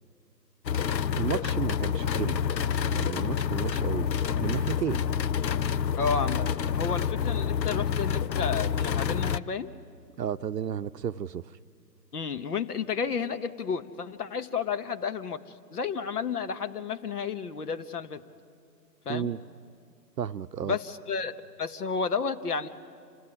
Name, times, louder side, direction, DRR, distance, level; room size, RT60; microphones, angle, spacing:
sound 1, 0.7-9.4, left 7 dB, 80° left, 0.7 m, -28 dB
voice 1, 1.1-2.4 2.9-4.1 4.4-5.0 10.2-11.4 19.1-19.4 20.2-20.8, right 9 dB, 75° right, 0.7 m, -32 dB
voice 2, 6.0-9.7 12.1-15.4 15.7-18.2 19.0-19.3 20.6-22.7, left 6 dB, 65° left, 1.5 m, -31 dB
27.0 x 15.5 x 10.0 m
figure-of-eight pair, 145°, 50 cm